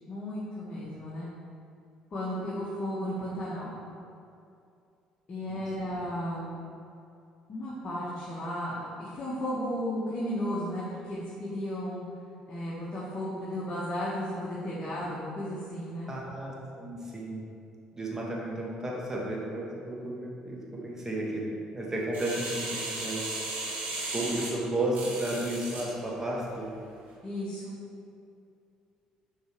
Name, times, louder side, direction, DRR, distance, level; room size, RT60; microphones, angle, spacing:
voice 1, 0.1-1.3 2.1-3.8 5.3-6.6 7.5-12.0 12.5-16.1 27.2-27.8, equal, 40° left, -8 dB, 1.5 m, -34 dB
voice 2, 16.1-17.4 17.9-23.2 24.1-26.7, right 1 dB, 20° right, -3 dB, 1.4 m, -33 dB
sound 1, 22.1-25.9 26.4-26.5, right 2 dB, 60° right, 1.3 m, -35 dB
5.4 x 3.9 x 4.6 m, 2.5 s
hypercardioid pair, 60°, 3 cm